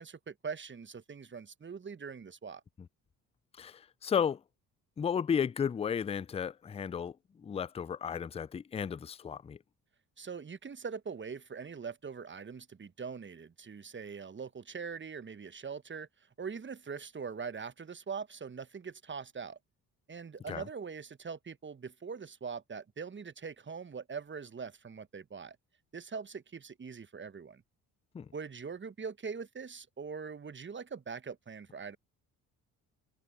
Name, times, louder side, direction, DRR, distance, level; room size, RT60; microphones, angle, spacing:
voice 1, 0.0-2.6 10.2-16.1 16.4-19.6 20.1-25.6 25.9-27.6 28.3-32.0, right 5 dB, 25° right, 1.1 m, -42 dB
voice 2, 3.6-4.4 5.0-9.6 20.5-20.6 28.1-28.3, left 7 dB, 15° left, 0.4 m, -33 dB
hypercardioid pair, 45°, 47 cm